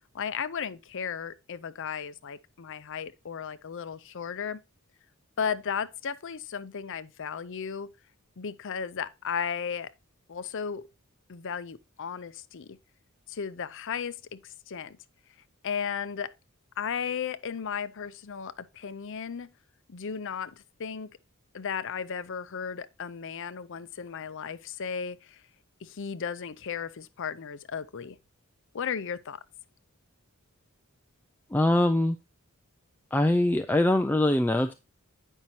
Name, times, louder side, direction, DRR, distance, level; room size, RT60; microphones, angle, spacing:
voice 1, 0.1-4.6 5.4-7.9 8.4-9.9 10.3-10.8 11.3-12.8 13.3-15.0 15.6-16.3 16.8-19.5 19.9-20.5 20.8-21.1 21.5-25.4 25.8-28.2 28.7-29.4, left 7 dB, 60° left, 0.6 m, -35 dB
voice 2, 31.5-32.2 33.1-34.7, left 1 dB, 10° left, 0.4 m, -23 dB
9.0 x 5.5 x 2.8 m
head